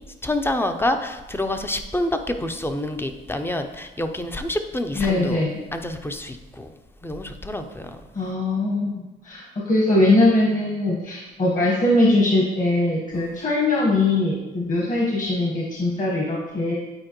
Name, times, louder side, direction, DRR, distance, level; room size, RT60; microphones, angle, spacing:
voice 1, 0.2-5.4 5.7-6.7 7.0-8.0 13.1-13.4, left 1 dB, 10° left, 7 dB, 0.5 m, -27 dB
voice 2, 4.9-5.6 8.1-16.8, left 2 dB, 40° left, -3 dB, 1.4 m, -21 dB
8.8 x 4.4 x 3.0 m, 1.1 s
cardioid pair, 90°, 20 cm